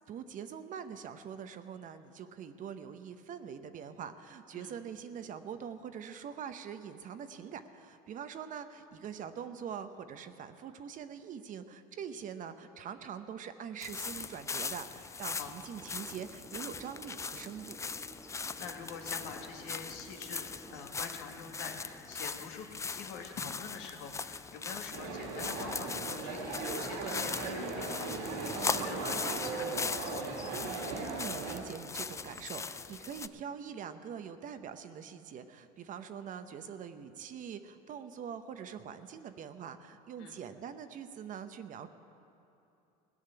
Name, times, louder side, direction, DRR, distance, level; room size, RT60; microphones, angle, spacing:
voice 1, 0.1-17.8 30.9-41.9, right 7 dB, 45° right, 9 dB, 0.9 m, -44 dB
sound 1, 13.8-33.3, left 5 dB, 15° left, 0.4 m, -40 dB
Engine, 15.7-20.9, right 2 dB, 10° right, 1.2 m, -54 dB
voice 2, 18.3-30.3 40.2-40.3, left 6 dB, 70° left, 2 dB, 1.9 m, -46 dB
sound 2, 24.9-31.6, right 3 dB, 75° right, 2.5 m, -38 dB
17.0 x 6.5 x 9.9 m, 2.9 s
supercardioid pair, 90°, 19 cm